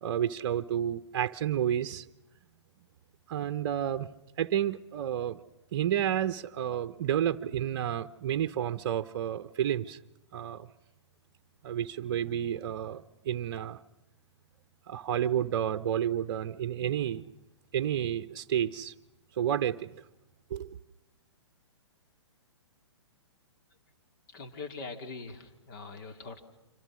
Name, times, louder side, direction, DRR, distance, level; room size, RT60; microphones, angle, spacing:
voice 1, 0.0-2.1 3.3-4.1 4.4-5.4 5.7-10.0 10.3-10.7 11.6-13.8 14.9-17.3 17.7-18.9 19.4-19.9 20.5-20.8, right 10 dB, 50° right, 10 dB, 0.8 m, -30 dB
voice 2, 24.3-26.4, left 4 dB, 45° left, 6 dB, 2.8 m, -42 dB
26.5 x 25.5 x 6.3 m, 0.99 s
figure-of-eight pair, 120°, 15 cm